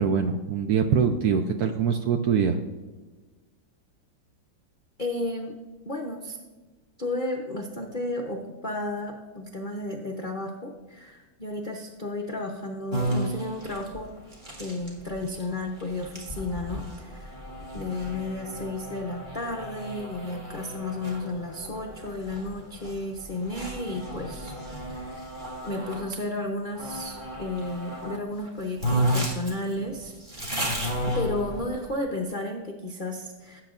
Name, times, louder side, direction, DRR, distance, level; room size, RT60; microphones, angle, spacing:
voice 1, 0.0-2.6, right 6 dB, 70° right, 6 dB, 0.9 m, -23 dB
voice 2, 5.0-5.6 5.9-6.4 7.0-14.1 14.6-17.4 17.7-25.3 25.6-30.1 31.1-33.6, left 2 dB, 60° left, 1 dB, 0.5 m, -33 dB
sound 1, 12.9-26.1 26.7-28.2 28.5-28.6 28.8-31.9, right 1 dB, 25° right, 1.9 m, -33 dB
16.5 x 8.0 x 2.5 m, 1.3 s
omnidirectional pair, 2.2 m